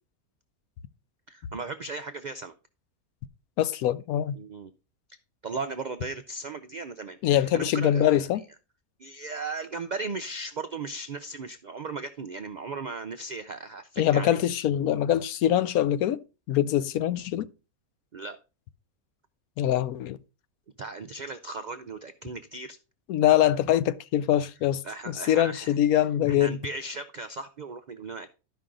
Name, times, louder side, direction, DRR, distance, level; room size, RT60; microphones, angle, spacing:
voice 1, 1.3-2.5 4.3-4.7 5.4-8.3 9.0-14.4 18.1-18.4 20.8-22.8 24.8-25.7 26.3-28.3, right 3 dB, 70° right, 0.4 m, -37 dB
voice 2, 3.6-4.4 7.2-8.4 14.0-16.2 16.5-17.5 19.6-20.2 23.1-26.6, left 11 dB, 80° left, 1.1 m, -24 dB
12.5 x 5.4 x 3.8 m
omnidirectional pair, 1.5 m